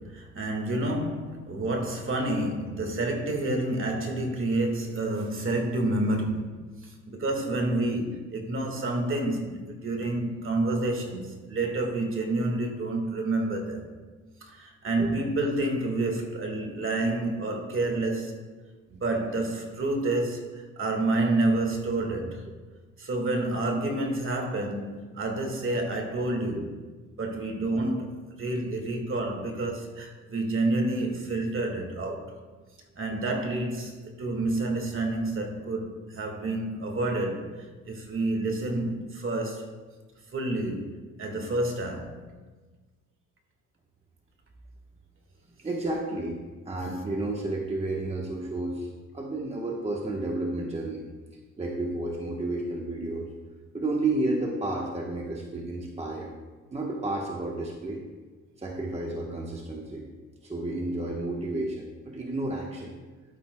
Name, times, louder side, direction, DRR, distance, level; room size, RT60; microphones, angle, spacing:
voice 1, 0.0-6.5 6.8-13.9 14.4-18.5 18.9-22.4 23.0-26.7 27.2-32.4 33.0-39.7 40.3-40.9 41.2-42.2, right 2 dB, 45° right, 3 dB, 1.7 m, -29 dB
voice 2, 45.6-46.4 46.6-48.9 49.1-51.0 51.6-53.3 53.7-56.3 56.7-58.0 58.6-60.0 60.4-62.9, right 2 dB, 20° right, -1 dB, 1.1 m, -31 dB
11.5 x 9.4 x 2.2 m, 1.3 s
cardioid pair, 90°, 30 cm